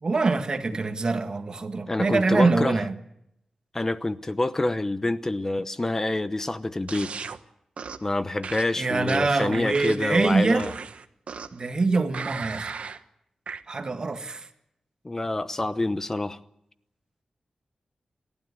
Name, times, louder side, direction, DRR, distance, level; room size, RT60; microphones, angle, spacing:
voice 1, 0.0-2.9 8.8-10.7 11.5-12.7 13.7-14.5, right 3 dB, 40° right, 1.7 m, -24 dB
voice 2, 1.9-2.8 3.7-7.1 8.0-10.7 15.0-16.4, left 2 dB, 20° left, 0.9 m, -27 dB
sound 1, 6.9-7.4 7.8-8.1 8.4-10.2 10.6-11.7 12.1-13.0 13.5-13.6, right 5 dB, 75° right, 1.2 m, -37 dB
30.0 x 12.5 x 9.7 m
wide cardioid pair, 150°, 2 cm